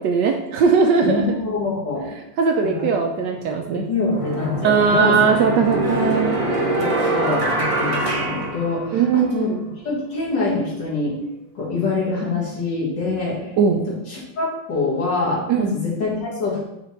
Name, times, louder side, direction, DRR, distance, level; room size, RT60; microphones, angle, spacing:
voice 1, 0.0-1.4 2.4-3.8 4.6-6.4 8.9-9.6 13.6-13.8 15.5-15.7, right 5 dB, 70° right, 2 dB, 1.1 m, -19 dB
voice 2, 1.0-2.1 2.7-2.9 3.9-5.1 5.4-5.8 6.8-9.5 9.8-11.1 11.6-13.4 14.1-16.7, left 3 dB, 60° left, -6 dB, 2.7 m, -25 dB
sound 1, 3.4-3.5 4.1-9.3, right 1 dB, 45° right, 0.4 m, -24 dB
5.8 x 3.9 x 4.3 m, 0.88 s
omnidirectional pair, 2.2 m